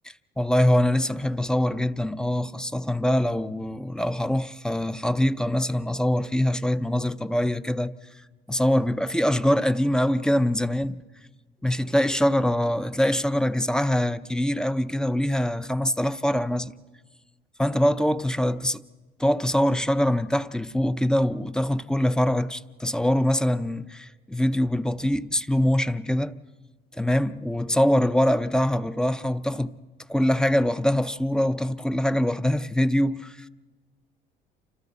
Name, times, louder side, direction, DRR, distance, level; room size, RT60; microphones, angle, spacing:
voice 1, 0.4-7.9 8.5-11.0 11.6-16.7 17.6-18.8 19.2-26.4 27.0-29.8 30.1-33.4, left 1 dB, 5° left, 0.6 m, -23 dB
29.0 x 26.0 x 4.1 m
cardioid pair, 110°, 17 cm